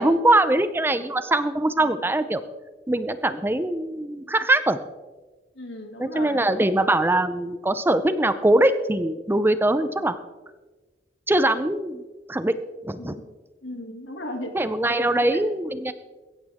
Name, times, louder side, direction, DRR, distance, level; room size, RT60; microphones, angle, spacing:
voice 1, 0.0-2.4 2.9-4.8 6.0-10.2 11.3-12.0 12.3-12.6 12.8-13.1 14.5-15.9, right 1 dB, 10° right, 12 dB, 0.5 m, -22 dB
voice 2, 5.6-6.5 9.9-10.0 13.0-13.2 13.6-14.5 15.1-15.5, left 1 dB, 85° left, 4 dB, 2.3 m, -37 dB
16.5 x 14.0 x 3.5 m, 1.2 s
head